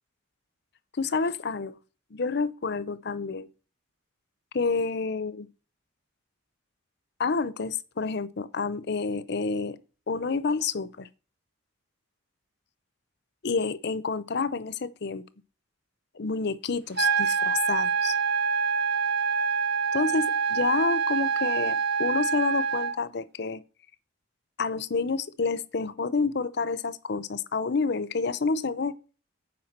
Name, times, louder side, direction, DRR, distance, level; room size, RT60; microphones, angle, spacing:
voice 1, 1.0-1.8 2.1-3.5 4.5-5.5 7.2-9.8 10.1-11.1 13.4-15.2 16.2-18.1 19.9-23.6 24.6-28.9, left 4 dB, 55° left, 0.6 m, -29 dB
sound 1, 17.0-23.0, right 6 dB, 50° right, 0.8 m, -26 dB
8.7 x 4.8 x 7.4 m
head